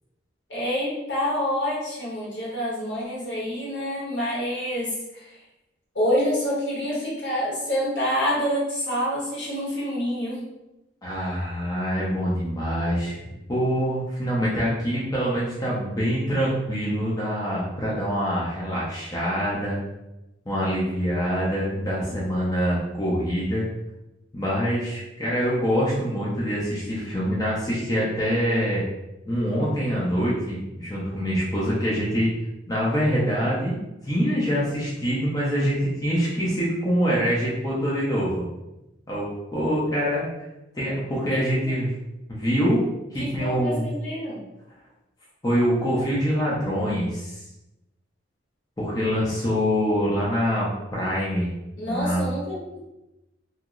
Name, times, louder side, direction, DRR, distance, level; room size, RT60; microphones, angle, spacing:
voice 1, 0.5-5.3 5.9-10.4 41.3-41.7 43.2-44.4 51.8-52.6, equal, 70° left, -6 dB, 1.3 m, -27 dB
voice 2, 11.0-13.2 13.5-19.8 20.5-23.6 24.3-28.8 29.3-32.3 32.7-33.8 34.0-38.4 39.1-40.3 40.7-41.9 42.3-42.8 43.1-43.9 45.4-47.4 48.8-51.5 51.9-52.3, equal, 20° left, -7 dB, 0.6 m, -25 dB
2.9 x 2.1 x 3.7 m, 0.95 s
head